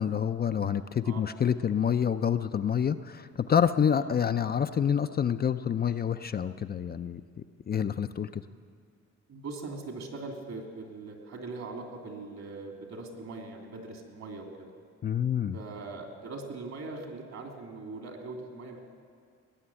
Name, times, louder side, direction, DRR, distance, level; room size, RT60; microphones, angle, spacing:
voice 1, 0.0-7.2 7.7-8.4 15.0-15.6, left 8 dB, 30° left, 9 dB, 0.4 m, -27 dB
voice 2, 9.3-14.7 15.5-18.8, right 3 dB, 60° right, 2 dB, 2.9 m, -41 dB
19.0 x 6.7 x 9.8 m, 2.2 s
cardioid pair, 90°, 30 cm